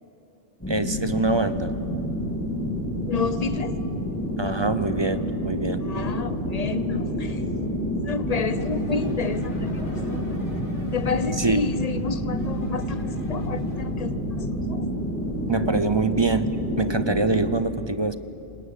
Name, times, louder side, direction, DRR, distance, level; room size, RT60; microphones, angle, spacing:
sound 1, 0.6-17.5, equal, 10° left, 3.3 m, -28 dB
voice 1, 0.7-1.7 4.4-5.8 11.4-11.6 15.5-16.5 16.8-18.1, right 3 dB, 30° right, 12 dB, 0.5 m, -24 dB
voice 2, 3.1-3.8 5.8-7.4 8.0-9.8 10.1-10.2 10.9-14.9, left 5 dB, 35° left, 12 dB, 0.8 m, -30 dB
sound 2, 8.3-13.8, equal, 70° left, 7.5 m, -40 dB
26.0 x 20.5 x 8.2 m, 2.9 s
omnidirectional pair, 1.2 m